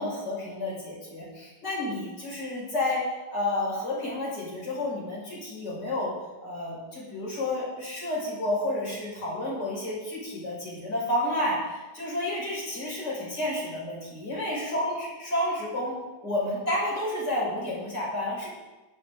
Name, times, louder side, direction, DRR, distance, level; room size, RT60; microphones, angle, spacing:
voice 1, 0.0-3.0 3.3-6.1 6.4-15.9 16.2-18.5, left 1 dB, 55° left, -6 dB, 6.3 m, -30 dB
15.5 x 13.5 x 3.9 m, 1.1 s
omnidirectional pair, 2.1 m